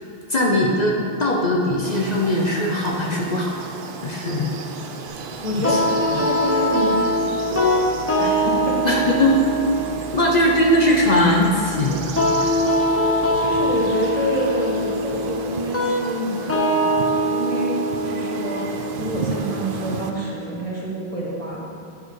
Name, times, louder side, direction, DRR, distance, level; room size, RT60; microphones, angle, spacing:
voice 1, 0.3-3.6 4.0-4.6 5.7-5.8 8.8-9.4 10.1-12.1, left 1 dB, 45° left, -1 dB, 0.8 m, -20 dB
sound 1, 1.8-20.1, right 5 dB, 65° right, 0.7 m, -35 dB
sound 2, 5.1-15.0, right 2 dB, 85° right, 1.3 m, -40 dB
voice 2, 5.4-7.1 8.2-8.8 13.3-21.6, equal, 35° right, -5 dB, 1.4 m, -27 dB
sound 3, 5.6-20.6, equal, 15° left, 0.6 m, -23 dB
8.9 x 4.9 x 4.7 m, 2.4 s
omnidirectional pair, 1.0 m